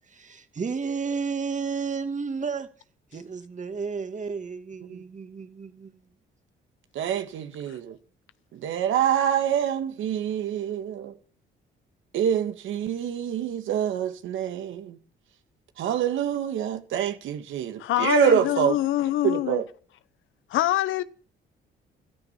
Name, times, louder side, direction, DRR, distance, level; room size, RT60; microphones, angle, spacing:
voice 1, 0.1-2.7 3.1-6.0, right 5 dB, 40° right, 2.2 m, -32 dB
voice 2, 7.0-8.0 8.6-11.1 12.1-15.0 15.8-18.8 19.2-19.6, right 9 dB, 80° right, 1.7 m, -26 dB
voice 3, 17.8-19.6 20.5-21.0, left 14 dB, 80° left, 0.9 m, -24 dB
15.0 x 13.5 x 5.8 m
cardioid pair, 90°, 20 cm